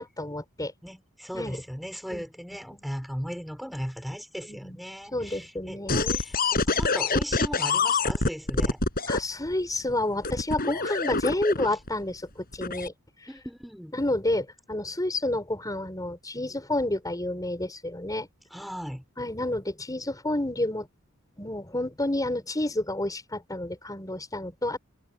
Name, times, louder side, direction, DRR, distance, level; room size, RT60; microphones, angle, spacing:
voice 1, 0.0-0.7 1.3-1.6 2.1-2.2 4.5-4.8 5.1-6.2 9.1-12.2 12.6-12.9 13.9-18.3 19.2-20.9 21.4-24.8, left 1 dB, 15° left, 5.8 m, -29 dB
voice 2, 0.8-5.8 6.1-8.8 13.3-14.0 18.5-19.0, equal, ahead, 5.5 m, -37 dB
sound 1, 5.9-9.2 10.2-11.9 12.5-12.9, left 3 dB, 45° left, 6.1 m, -25 dB
head